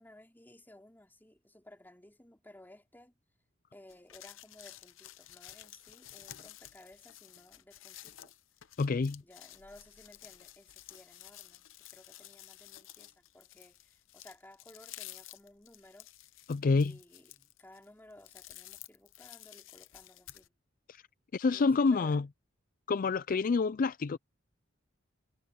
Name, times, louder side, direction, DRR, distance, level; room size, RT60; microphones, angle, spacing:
voice 1, 0.0-3.1 3.7-8.4 9.2-16.1 16.7-20.5 21.5-22.2, left 1 dB, 10° left, 3.1 m, -57 dB
sound 1, 3.9-20.5, left 14 dB, 85° left, 0.8 m, -52 dB
voice 2, 8.8-9.2 16.5-17.0 20.9-21.0 21.3-22.3 22.9-24.2, left 4 dB, 45° left, 0.4 m, -28 dB
head